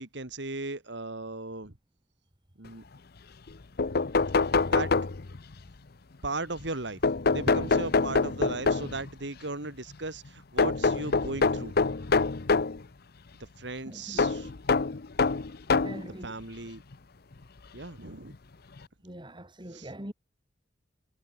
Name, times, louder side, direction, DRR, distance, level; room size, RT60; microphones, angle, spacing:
voice 1, 0.0-1.8 2.6-2.8 4.7-4.9 6.2-7.0 7.3-11.7 13.4-14.5 16.2-16.8 17.7-18.3 19.7-19.9, right 2 dB, 65° right, 2.8 m, -37 dB
sound 1, 3.5-3.6 3.8-5.5 7.0-9.1 10.6-12.8 14.2-16.1 16.9-17.0 18.3-18.4 18.8-18.9, left 4 dB, 55° left, 0.8 m, -25 dB
voice 2, 13.9-14.5 15.8-16.3 19.0-20.1, right 1 dB, 25° right, 3.7 m, -43 dB
head